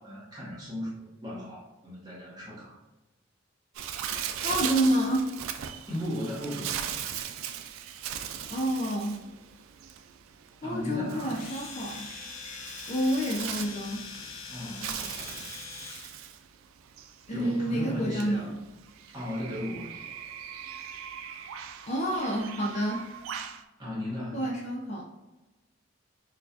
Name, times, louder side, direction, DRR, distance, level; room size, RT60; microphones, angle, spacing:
voice 1, 0.0-2.8 5.9-6.9 10.6-11.4 14.5-15.4 17.3-18.5 19.1-20.0 23.8-24.4, left 1 dB, 20° right, -7 dB, 1.2 m, -36 dB
Bird, 3.7-23.6, right 9 dB, 85° right, 0.3 m, -39 dB
voice 2, 4.4-5.3 8.5-9.2 10.6-12.0 12.9-14.0 17.3-18.6 21.9-23.1 24.3-25.1, equal, 35° left, -2 dB, 0.5 m, -28 dB
Domestic sounds home sounds, 11.3-16.1, left 5 dB, 85° left, 0.6 m, -42 dB
4.4 x 2.3 x 2.7 m, 1.0 s
head